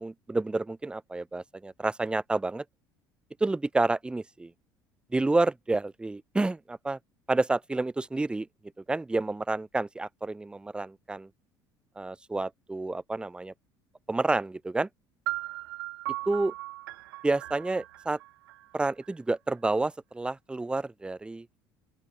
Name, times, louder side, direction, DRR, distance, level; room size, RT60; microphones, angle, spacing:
voice 1, 0.0-2.6 3.4-4.5 5.1-7.0 7.3-8.5 8.9-11.3 12.0-13.5 14.1-14.9 16.3-16.5 17.2-18.2 18.7-21.6, right 2 dB, 10° right, 0.4 m, -29 dB
sound 1, 15.3-19.1, right 18 dB, 70° right, 1.6 m, -38 dB
open air
figure-of-eight pair, 60°, 12 cm